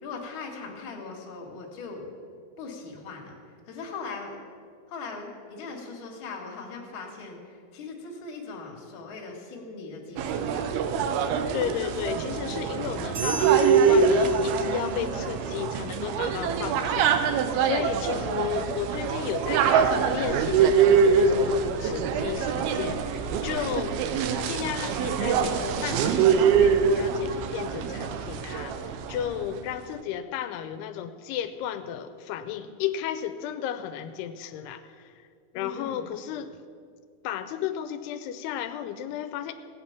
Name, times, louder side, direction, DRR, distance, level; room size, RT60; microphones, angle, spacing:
voice 1, 0.0-2.1 2.6-3.3 3.7-4.4 4.9-10.7 18.1-18.3 19.3-19.4 24.5-24.8 35.5-36.1, left 4 dB, 40° left, 0 dB, 2.1 m, -40 dB
sound 1, 10.2-29.4, right 6 dB, 80° right, 2.6 m, -24 dB
voice 2, 11.5-24.0 24.5-35.1 35.5-36.5 37.2-39.5, left 10 dB, 85° left, 10 dB, 2.6 m, -33 dB
sound 2, 13.2-15.0, right 4 dB, 50° right, 3.0 m, -38 dB
16.5 x 8.8 x 5.9 m, 2.1 s
omnidirectional pair, 4.6 m